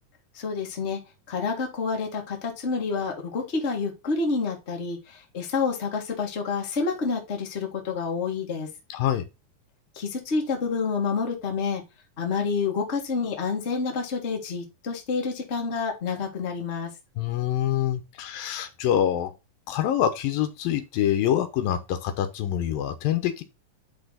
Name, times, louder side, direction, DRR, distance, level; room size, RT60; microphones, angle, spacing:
voice 1, 0.3-1.0 1.3-8.7 9.9-11.8 12.2-16.9, left 4 dB, 25° left, 1.5 m, -28 dB
voice 2, 8.9-9.3 17.2-19.3 19.7-23.4, left 10 dB, 80° left, 2.8 m, -25 dB
10.5 x 3.6 x 4.0 m
omnidirectional pair, 4.1 m